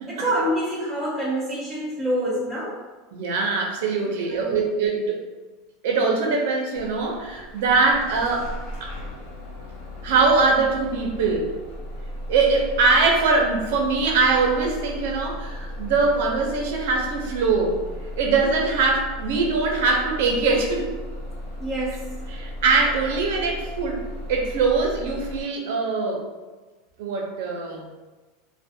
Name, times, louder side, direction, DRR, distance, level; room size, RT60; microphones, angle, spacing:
voice 1, 0.1-2.8 4.3-4.6 21.6-22.1, right 1 dB, 5° left, -9 dB, 0.5 m, -26 dB
voice 2, 3.1-5.2 5.8-8.5 8.8-8.9 10.0-11.6 12.3-17.8 18.2-20.9 22.3-24.0 24.3-26.3 27.0-27.9, right 4 dB, 70° right, 1 dB, 0.5 m, -22 dB
Bus / Engine starting, 6.7-25.4, left 1 dB, 70° left, 0.7 m, -36 dB
2.4 x 2.1 x 2.6 m, 1.3 s
supercardioid pair, 155°, 0 cm